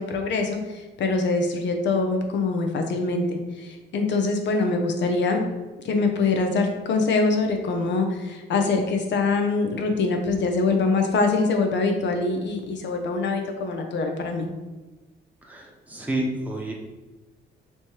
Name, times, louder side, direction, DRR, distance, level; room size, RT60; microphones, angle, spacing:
voice 1, 0.0-5.4 5.8-14.5, left 3 dB, 65° left, 4 dB, 0.7 m, -24 dB
voice 2, 15.4-16.7, right 1 dB, 5° right, -2 dB, 0.9 m, -29 dB
3.3 x 2.9 x 4.5 m, 1.2 s
cardioid pair, 90°, 20 cm